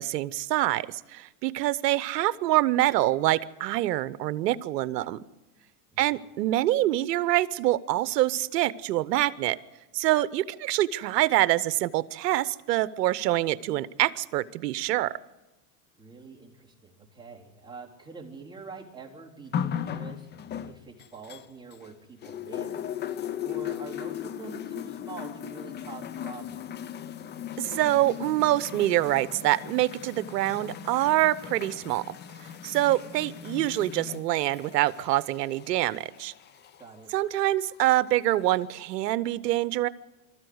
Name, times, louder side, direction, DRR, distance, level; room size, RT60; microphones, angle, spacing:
voice 1, 0.0-5.2 6.0-9.6 9.9-15.1 27.6-32.1 32.6-36.3 37.1-39.9, right 15 dB, 75° right, 17 dB, 1.0 m, -25 dB
voice 2, 15.9-20.3 20.6-22.9 23.4-26.6 36.8-37.1, right 5 dB, 10° right, -3 dB, 3.9 m, -45 dB
sound 1, 19.5-21.9 22.2-36.9 37.8-37.9, left 9 dB, 20° left, 0.7 m, -37 dB
24.5 x 13.5 x 8.0 m, 1.1 s
hypercardioid pair, 120°, 49 cm